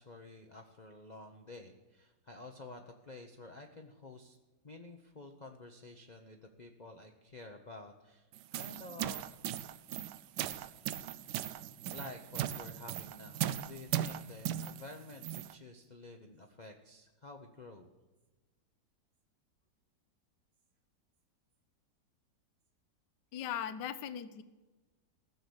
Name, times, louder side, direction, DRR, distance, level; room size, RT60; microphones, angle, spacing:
voice 1, 0.0-4.4 4.6-8.3 8.5-9.2 11.9-17.9, left 2 dB, 35° left, 3 dB, 0.7 m, -51 dB
sound 1, 8.3-15.5, right 11 dB, 75° right, 1.2 m, -38 dB
voice 2, 23.3-24.4, left 9 dB, 75° left, 13 dB, 1.4 m, -39 dB
15.0 x 6.9 x 7.9 m, 1.2 s
omnidirectional pair, 1.9 m